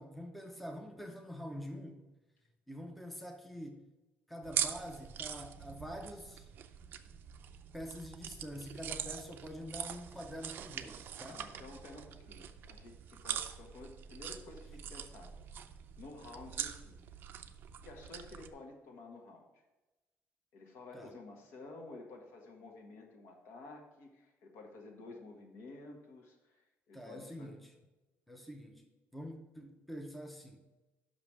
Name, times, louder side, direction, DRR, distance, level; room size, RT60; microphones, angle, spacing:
voice 1, 0.0-2.0 2.7-3.8 4.3-6.5 7.7-11.4 20.9-21.1 26.9-27.7 28.3-28.9 29.1-30.6, equal, ahead, 3 dB, 0.6 m, -46 dB
sound 1, 4.4-18.5, right 9 dB, 50° right, 0.5 m, -43 dB
voice 2, 11.3-15.3 16.0-17.0 17.8-19.6 20.5-27.5, left 2 dB, 70° left, 2 dB, 1.6 m, -52 dB
5.9 x 5.3 x 6.2 m, 1.1 s
cardioid pair, 170°, 5 cm